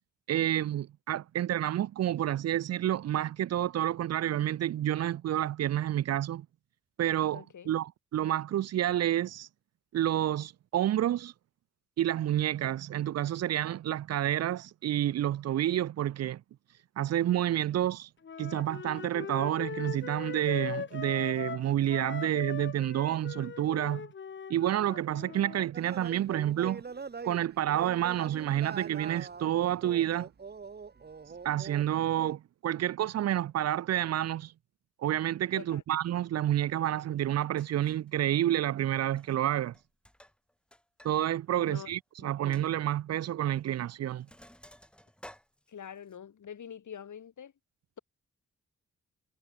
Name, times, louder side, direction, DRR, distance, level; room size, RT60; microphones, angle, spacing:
voice 1, 0.3-6.5 7.0-9.5 9.9-11.3 12.0-16.4 17.0-18.1 18.4-24.1 24.5-26.8 27.2-30.3 31.4-34.5 35.0-39.7 41.0-44.3, right 12 dB, 60° right, 0.4 m, -29 dB
voice 2, 7.3-7.7 35.5-35.8 41.6-41.9 42.2-42.4 45.7-47.5, left 8 dB, 75° left, 5.5 m, -45 dB
Wind instrument woodwind instrument, 18.2-25.7, left 6 dB, 40° left, 0.8 m, -40 dB
sound 1, 25.7-32.3, right 5 dB, 35° right, 1.1 m, -43 dB
Sink (filling or washing), 37.2-37.3 37.6-38.1 39.1-39.5 39.7-41.1 41.4-41.5 42.0-42.1 42.5-42.7 43.5-43.7 44.0-46.2, equal, 5° left, 2.8 m, -55 dB
wide cardioid pair, 100°, 30 cm